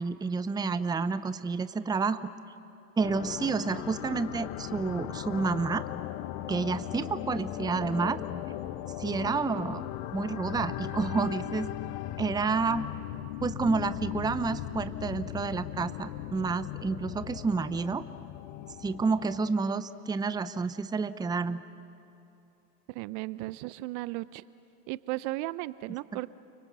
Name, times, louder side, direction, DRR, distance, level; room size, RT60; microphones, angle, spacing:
voice 1, 0.0-2.2 3.0-5.8 6.5-8.2 9.0-9.8 10.1-11.7 12.2-12.9 13.4-18.0 18.8-21.6, right 4 dB, 10° right, 13 dB, 0.7 m, -29 dB
sound 1, 3.0-19.5, left 14 dB, 50° left, 1.2 m, -38 dB
voice 2, 22.9-24.4 24.9-26.3, right 19 dB, 45° right, 18 dB, 0.7 m, -35 dB
29.5 x 24.0 x 8.1 m, 2.7 s
hypercardioid pair, 90°, 46 cm